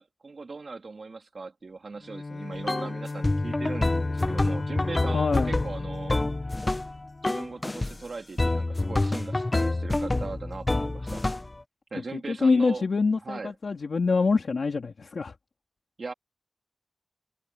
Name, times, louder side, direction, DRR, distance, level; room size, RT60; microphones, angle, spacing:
voice 1, 0.0-6.1 7.2-11.2 11.9-12.8 13.2-13.5 16.0-16.1, right 4 dB, 70° right, 3.1 m, -39 dB
Bowed string instrument, 2.0-7.6, left 3 dB, 50° left, 2.0 m, -36 dB
sound 1, 2.7-2.9 3.2-7.0 7.2-7.9 8.4-11.6, left 2 dB, 30° left, 1.2 m, -27 dB
voice 2, 5.1-5.5 12.0-15.4, left 4 dB, 80° left, 3.3 m, -25 dB
wide cardioid pair, 85°, 0 cm